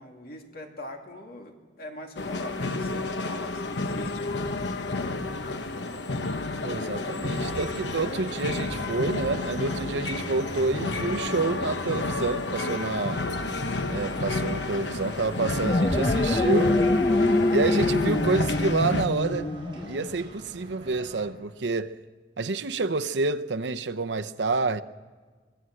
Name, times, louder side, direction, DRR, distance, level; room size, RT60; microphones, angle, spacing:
voice 1, 0.0-6.3, left 1 dB, 60° left, 2.4 m, -42 dB
sound 1, 2.2-19.1, left 2 dB, 85° left, 1.1 m, -31 dB
voice 2, 6.6-13.2 13.9-16.8 17.5-19.5 19.9-22.0 22.4-24.8, right 3 dB, 85° right, 0.8 m, -28 dB
sound 2, 7.2-21.3, right 1 dB, 30° right, 5.7 m, -43 dB
sound 3, 15.5-20.1, left 2 dB, 30° left, 0.7 m, -24 dB
24.5 x 16.5 x 7.8 m
head